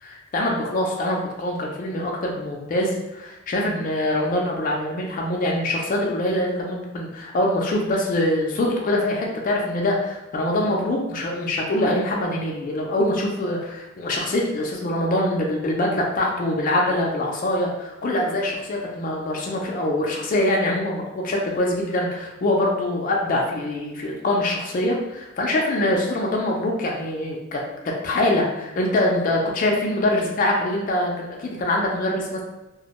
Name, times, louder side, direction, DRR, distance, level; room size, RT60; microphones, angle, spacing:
voice 1, 0.0-27.6 28.0-32.4, left 1 dB, 40° left, -1 dB, 0.4 m, -24 dB
2.1 x 2.0 x 2.8 m, 1.0 s
head